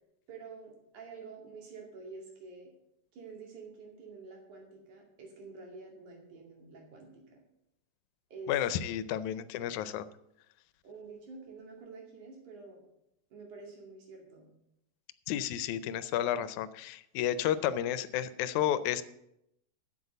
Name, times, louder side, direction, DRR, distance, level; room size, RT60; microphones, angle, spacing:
voice 1, 0.3-2.7 3.1-7.4 8.3-8.5 10.8-12.8 13.3-14.5, right 4 dB, 80° right, 0 dB, 3.8 m, -48 dB
voice 2, 8.5-10.1 15.3-19.0, left 11 dB, 85° left, 15 dB, 2.0 m, -31 dB
8.0 x 7.4 x 7.9 m, 0.82 s
omnidirectional pair, 3.4 m